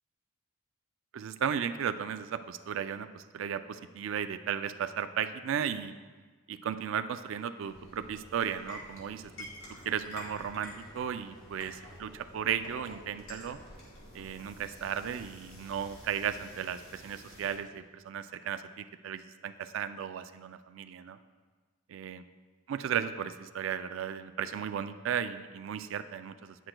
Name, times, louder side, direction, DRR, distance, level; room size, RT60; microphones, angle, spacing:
voice 1, 1.1-5.9 6.5-9.5 9.8-13.6 14.1-21.2 21.9-22.2 22.7-26.6, right 8 dB, 60° right, 11 dB, 0.3 m, -35 dB
sound 1, 7.6-17.6, equal, 65° left, 2.4 m, -49 dB
9.9 x 7.7 x 2.2 m, 1.4 s
head